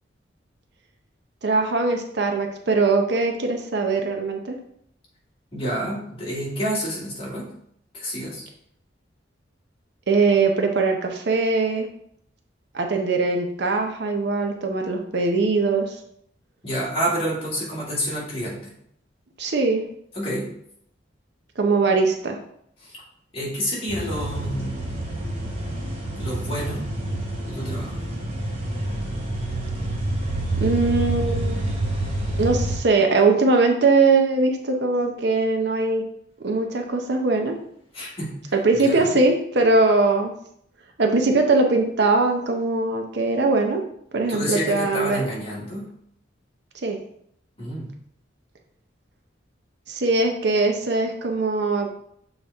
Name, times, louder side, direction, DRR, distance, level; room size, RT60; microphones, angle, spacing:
voice 1, 1.4-4.6 10.1-11.9 12.7-16.0 19.4-19.8 21.6-22.4 30.6-31.6 32.4-36.0 36.4-37.6 38.5-40.3 41.0-43.8 44.1-45.3 46.8-47.0 49.9-51.9, right 3 dB, 60° right, 3 dB, 0.7 m, -21 dB
voice 2, 5.5-7.5 7.9-8.4 16.6-18.7 20.1-20.5 22.8-23.0 23.3-25.2 26.2-26.9 27.5-27.9 37.9-38.4 38.8-39.2 44.3-45.9 47.6-47.9, equal, 30° left, -7 dB, 2.2 m, -29 dB
sound 1, 23.9-32.8, right 1 dB, 30° right, 1.2 m, -28 dB
6.9 x 4.0 x 3.5 m, 0.69 s
head